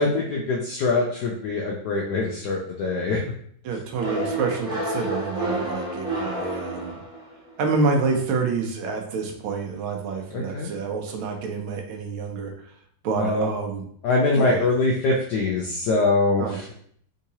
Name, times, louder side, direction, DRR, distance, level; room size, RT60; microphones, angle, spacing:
voice 1, 0.0-3.2 10.3-10.7 13.2-13.5 14.0-16.7, left 3 dB, 80° left, -1 dB, 0.9 m, -23 dB
voice 2, 3.6-7.0 7.6-12.5 13.0-13.9 14.3-14.7 16.4-16.7, right 4 dB, 75° right, 2 dB, 1.4 m, -27 dB
sound 1, 4.0-7.5, right 1 dB, 50° right, 1.2 m, -29 dB
3.6 x 2.9 x 2.7 m, 0.62 s
omnidirectional pair, 2.3 m